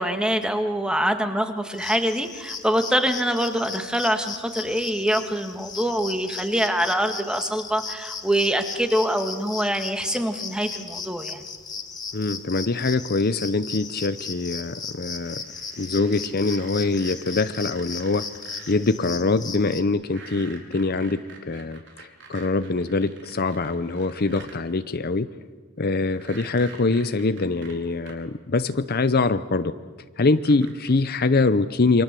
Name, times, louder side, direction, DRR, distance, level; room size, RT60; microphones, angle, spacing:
voice 1, 0.0-11.4, equal, 5° right, 6 dB, 1.9 m, -24 dB
sound 1, 1.7-19.8, left 5 dB, 20° left, 2.0 m, -37 dB
voice 2, 12.1-15.4 15.8-18.3 18.7-25.3 25.8-29.7 30.2-32.0, left 3 dB, 45° left, 12 dB, 0.7 m, -24 dB
sound 2, 15.2-18.7 20.0-24.6 26.1-28.1 29.2-29.3 30.3-30.9, right 4 dB, 60° right, 4.5 m, -46 dB
28.5 x 24.5 x 7.7 m, 1.5 s
head